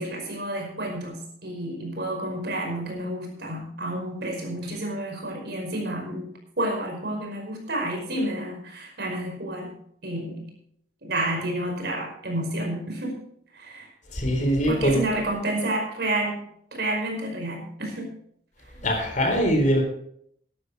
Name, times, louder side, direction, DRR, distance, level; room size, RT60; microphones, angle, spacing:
voice 1, 0.0-9.8 10.0-10.5 11.0-13.2 13.5-13.9 14.7-16.4 16.7-18.1, right 1 dB, 60° right, 2 dB, 5.1 m, -30 dB
voice 2, 14.1-15.0 18.8-19.8, equal, 45° left, 3 dB, 3.9 m, -22 dB
14.5 x 11.0 x 4.8 m, 0.69 s
head